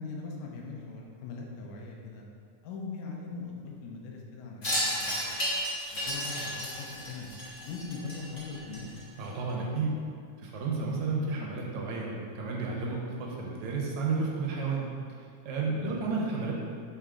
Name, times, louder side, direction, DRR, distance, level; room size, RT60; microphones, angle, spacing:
voice 1, 0.0-2.2 2.6-5.3 5.9-7.3 7.6-8.9 15.7-16.0, left 4 dB, 75° left, -1 dB, 2.0 m, -41 dB
Wind chime, 4.6-9.2, equal, 55° left, 0.8 m, -33 dB
voice 2, 9.2-10.0 10.4-14.9 15.4-16.5, right 4 dB, 75° right, -2 dB, 2.1 m, -32 dB
5.6 x 3.5 x 4.9 m, 2.2 s
omnidirectional pair, 3.5 m